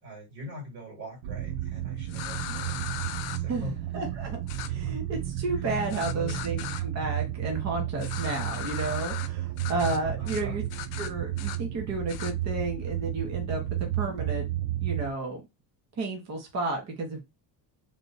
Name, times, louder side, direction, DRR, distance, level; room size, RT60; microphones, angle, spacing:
voice 1, 0.0-2.8 3.3-4.1 5.9-6.4 10.2-10.6, left 1 dB, 55° right, -1 dB, 2.5 m, -41 dB
sound 1, 1.2-15.1, right 13 dB, 85° right, 0.7 m, -32 dB
sound 2, 2.1-3.4 4.5-4.7 5.9-6.8 8.0-9.3 9.6-10.0 10.2-10.4 10.7-11.6 12.1-12.3, left 12 dB, 85° left, 0.6 m, -38 dB
voice 2, 3.5-10.6 11.0-14.5 14.8-15.4 16.0-17.2, right 2 dB, 35° right, 1 dB, 1.0 m, -32 dB
3.6 x 2.4 x 3.9 m, 0.23 s
cardioid pair, 160°, 44 cm